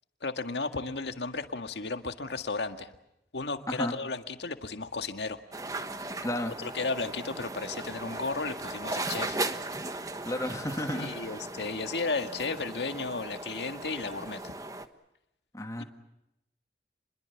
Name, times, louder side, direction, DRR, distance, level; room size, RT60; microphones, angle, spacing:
voice 1, 0.2-2.9 3.3-5.4 6.6-9.4 10.9-14.5 15.8-15.9, left 3 dB, 85° left, 8 dB, 1.9 m, -34 dB
sound 1, 5.5-14.9, right 2 dB, 20° right, 1.3 m, -37 dB
voice 2, 6.2-6.5 10.3-11.3 15.5-15.8, left 1 dB, 20° left, 5 dB, 2.5 m, -32 dB
29.5 x 22.0 x 7.2 m, 0.86 s
head